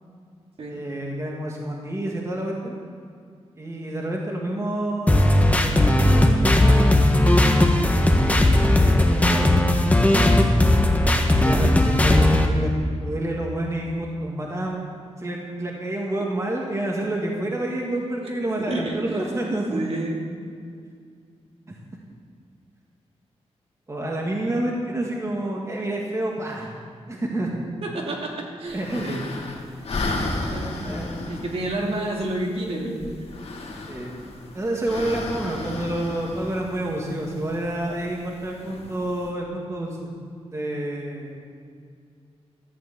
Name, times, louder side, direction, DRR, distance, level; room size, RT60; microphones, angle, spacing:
voice 1, 0.7-2.7 3.6-7.3 8.7-9.5 10.0-10.3 11.4-12.7 13.0-14.9 15.2-19.9 21.7-21.8 23.9-26.7 27.1-27.5 28.7-29.2 30.8-31.1 33.9-34.1 34.5-40.1 40.5-41.4, right 1 dB, 25° right, -1 dB, 2.1 m, -29 dB
sound 1, 5.1-12.5, left 1 dB, 15° left, 1.5 m, -17 dB
voice 2, 18.7-19.2 19.7-20.2 27.8-29.2 30.5-30.8 31.3-33.0, right 1 dB, 60° right, -2 dB, 2.9 m, -29 dB
sound 2, 28.7-39.3, left 2 dB, 60° left, 2.6 m, -34 dB
14.0 x 8.6 x 8.1 m, 2.2 s
wide cardioid pair, 100°, 11 cm